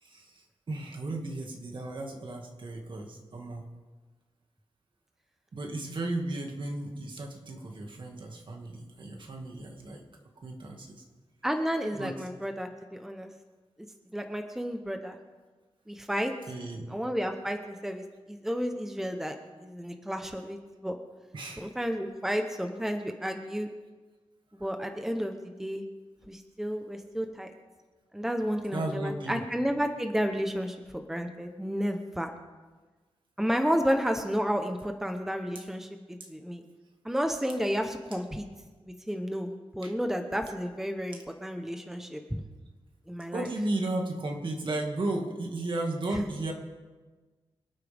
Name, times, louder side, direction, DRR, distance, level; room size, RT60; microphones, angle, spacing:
voice 1, 0.0-3.7 5.5-10.0 10.4-11.0 12.0-12.1 16.5-16.9 21.3-21.8 24.6-24.7 28.7-29.4 36.2-36.3 39.8-39.9 43.3-46.5, right 2 dB, 55° right, 2 dB, 2.1 m, -34 dB
voice 2, 11.4-13.3 13.8-13.9 14.1-15.2 15.9-16.3 16.9-21.0 21.6-23.7 24.6-25.8 26.3-27.5 28.1-32.3 33.4-36.6 37.0-38.5 38.8-42.4 43.1-43.5, equal, 5° right, 5 dB, 0.9 m, -32 dB
26.0 x 9.0 x 3.6 m, 1.3 s
wide cardioid pair, 110°, 10 cm